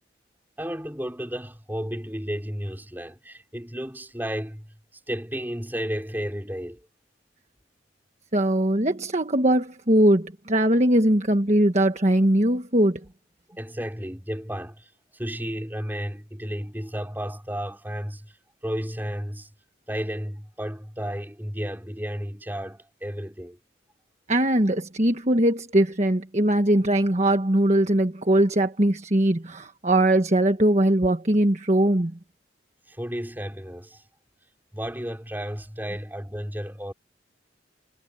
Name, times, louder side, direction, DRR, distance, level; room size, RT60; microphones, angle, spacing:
voice 1, 0.6-4.7 5.1-6.8 13.6-18.4 18.6-19.5 19.9-23.6 32.9-34.0 34.7-36.9, equal, 10° right, 4.7 m, -33 dB
voice 2, 8.3-13.0 24.3-32.1, right 1 dB, 35° right, 1.4 m, -21 dB
head